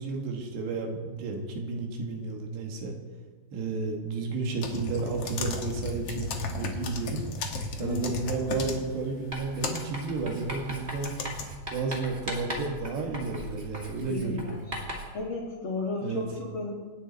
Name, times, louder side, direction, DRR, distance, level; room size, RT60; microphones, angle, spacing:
voice 1, 0.0-2.9 3.5-7.3 7.8-11.1 11.7-14.7 16.0-16.3, right 4 dB, 75° right, 1 dB, 4.0 m, -32 dB
sound 1, 4.6-11.5, left 3 dB, 75° left, 1.4 m, -36 dB
voice 2, 7.8-8.1 14.0-14.6 15.1-16.7, left 3 dB, 35° left, -8 dB, 2.6 m, -33 dB
Writing, 9.3-15.2, equal, 25° right, 1.4 m, -39 dB
27.5 x 9.5 x 4.2 m, 1.4 s
omnidirectional pair, 5.0 m